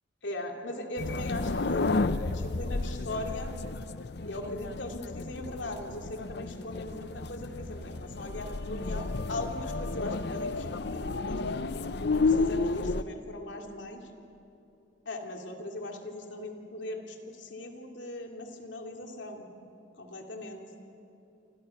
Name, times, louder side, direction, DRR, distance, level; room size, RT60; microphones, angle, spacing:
voice 1, 0.2-3.5 4.2-11.7 12.1-14.1 15.0-19.5 20.0-20.6, left 1 dB, 90° left, 2 dB, 3.0 m, -39 dB
sound 1, 1.0-13.0, left 3 dB, 65° left, 0.7 m, -32 dB
28.5 x 26.0 x 6.1 m, 2.9 s
head